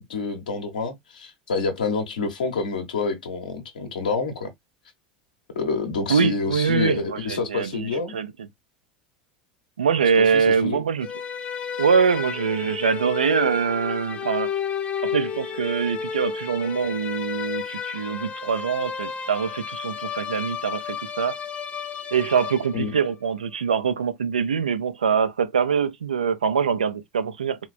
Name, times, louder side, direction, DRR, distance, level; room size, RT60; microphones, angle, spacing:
voice 1, 0.0-4.5 5.5-8.2 10.2-10.9 22.7-23.0, left 4 dB, 75° left, 0.8 m, -28 dB
voice 2, 6.1-8.3 9.8-11.1 11.8-14.5 15.0-21.3 22.1-27.6, right 6 dB, 80° right, 0.4 m, -23 dB
sound 1, 11.0-23.1, left 7 dB, 30° left, 0.6 m, -32 dB
3.2 x 2.2 x 2.3 m
figure-of-eight pair, 75°, 4 cm